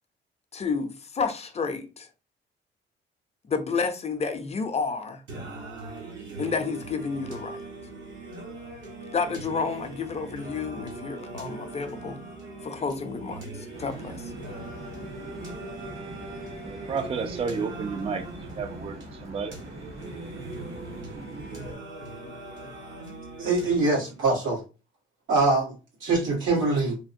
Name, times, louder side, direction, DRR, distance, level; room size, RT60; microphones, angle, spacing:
voice 1, 0.5-2.1 3.5-5.2 6.4-7.6 9.1-12.2 12.6-14.3, left 5 dB, 35° left, 0.5 m, -30 dB
Singing, 5.3-24.3, right 2 dB, 70° right, 1.1 m, -40 dB
sound 1, 13.7-21.7, right 1 dB, 55° right, 1.4 m, -43 dB
voice 2, 16.6-19.5, right 5 dB, 30° right, 0.4 m, -32 dB
voice 3, 23.4-24.6 25.3-25.7 26.0-27.0, right 3 dB, 90° right, 1.5 m, -23 dB
3.3 x 2.1 x 2.6 m
cardioid pair, 90°, 20 cm